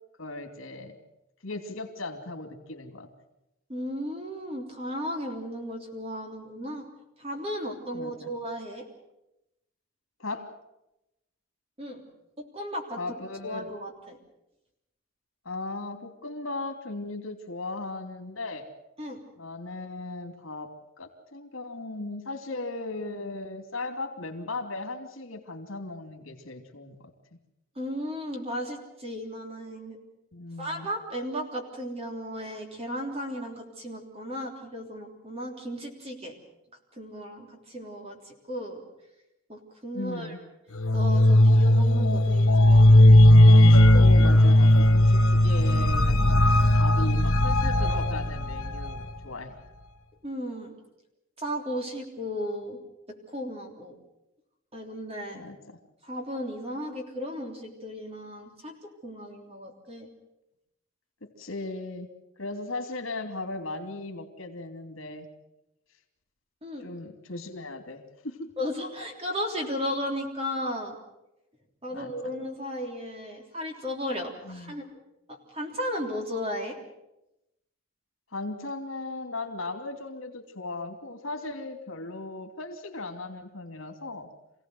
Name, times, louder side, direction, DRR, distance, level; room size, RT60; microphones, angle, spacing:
voice 1, 0.2-1.0 1.4-3.1 7.9-8.3 10.2-10.5 13.0-13.7 15.4-18.7 19.4-27.1 30.3-30.9 39.9-40.4 43.9-49.5 55.3-55.8 61.2-62.1 62.4-65.3 66.8-68.5 71.9-72.3 74.4-74.8 78.3-84.3, left 2 dB, 70° left, 5 dB, 2.9 m, -37 dB
voice 2, 3.7-6.9 7.2-8.9 11.8-12.0 12.4-13.0 13.4-14.2 19.0-19.2 27.7-30.0 30.6-36.3 36.9-38.8 39.5-40.4 40.9-43.1 43.6-44.1 50.2-50.7 51.4-52.8 53.1-54.0 54.7-55.4 56.0-58.7 59.0-60.1 66.6-66.9 68.6-71.0 71.8-75.0 75.3-76.8, equal, 30° right, 2 dB, 3.4 m, -35 dB
sound 1, 40.8-49.1, left 1 dB, 90° left, 1.6 m, -17 dB
26.5 x 17.0 x 7.9 m, 0.90 s
head